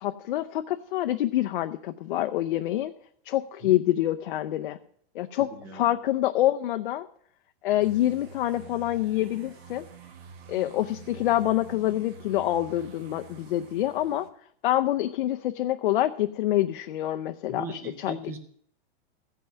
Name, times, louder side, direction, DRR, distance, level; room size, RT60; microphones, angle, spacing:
voice 1, 0.0-2.9 3.3-4.8 5.1-7.1 7.6-9.8 10.5-14.3 14.6-18.1, left 14 dB, 55° left, 7 dB, 0.6 m, -26 dB
voice 2, 5.4-6.0 17.5-18.4, right 1 dB, 10° right, 9 dB, 0.4 m, -39 dB
sound 1, 7.8-14.3, right 7 dB, 70° right, 1.4 m, -47 dB
15.0 x 5.6 x 9.0 m, 0.64 s
supercardioid pair, 180°, 32 cm